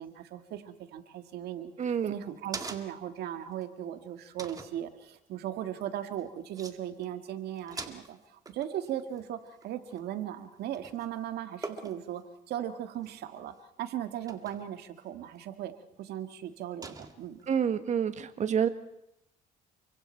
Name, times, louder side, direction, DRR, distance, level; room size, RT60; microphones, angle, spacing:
voice 1, 0.0-1.7 2.0-12.2 12.5-15.7 16.0-17.4, right 11 dB, 75° right, 8 dB, 1.9 m, -38 dB
sound 1, 1.8-3.2 3.6-3.7 4.4-4.8 6.2-6.3 6.5-6.8 7.0-7.3 7.6-10.4 10.7-11.1 11.6-12.2 12.9-13.4 14.3-14.7 15.4-15.5 16.8-17.5, right 3 dB, 20° right, 2.0 m, -43 dB
voice 2, 1.8-2.1 17.5-18.7, right 8 dB, 45° right, 10 dB, 1.6 m, -28 dB
29.5 x 24.5 x 4.5 m, 0.80 s
cardioid pair, 110°, 17 cm